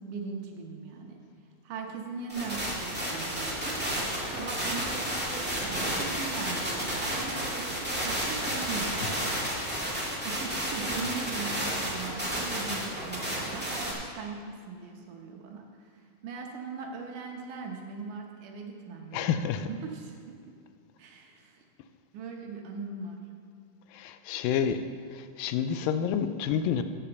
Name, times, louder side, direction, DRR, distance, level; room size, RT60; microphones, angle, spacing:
voice 1, 0.0-1.2 1.6-3.8 4.2-9.1 10.2-20.4 21.0-21.6 22.1-23.3, right 4 dB, 70° right, 1 dB, 2.3 m, -40 dB
sound 1, 2.3-13.9, equal, 5° right, 0.8 m, -32 dB
voice 2, 19.1-19.7 23.9-24.8 25.1-26.8, left 8 dB, 85° left, 10 dB, 2.2 m, -29 dB
8.9 x 7.3 x 6.8 m, 2.3 s
omnidirectional pair, 4.1 m